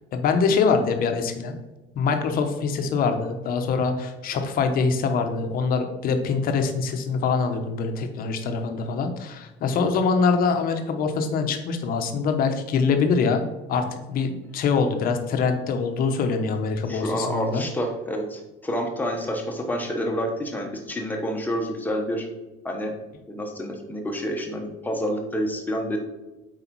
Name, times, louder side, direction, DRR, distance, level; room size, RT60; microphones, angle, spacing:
voice 1, 0.1-1.5 2.0-13.4 13.7-17.6, left 5 dB, 45° left, 6 dB, 1.0 m, -24 dB
voice 2, 16.9-22.3 22.6-22.9 23.3-26.0, equal, 10° left, 2 dB, 1.1 m, -28 dB
8.1 x 4.8 x 4.6 m, 1.1 s
cardioid pair, 170°, 21 cm